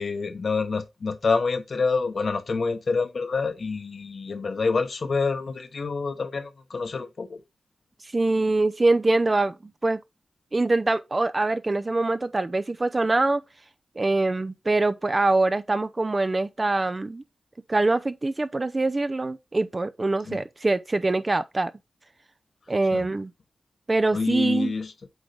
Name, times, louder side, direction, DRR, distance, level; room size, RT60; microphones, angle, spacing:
voice 1, 0.0-7.4 20.3-20.4 22.9-23.1 24.1-24.9, left 4 dB, 60° left, 1.1 m, -27 dB
voice 2, 8.0-10.0 10.5-13.4 14.0-17.2 17.7-21.7 22.7-23.3 23.9-24.7, right 2 dB, 35° right, 0.6 m, -24 dB
8.2 x 3.9 x 3.5 m
wide cardioid pair, 75°, 0 cm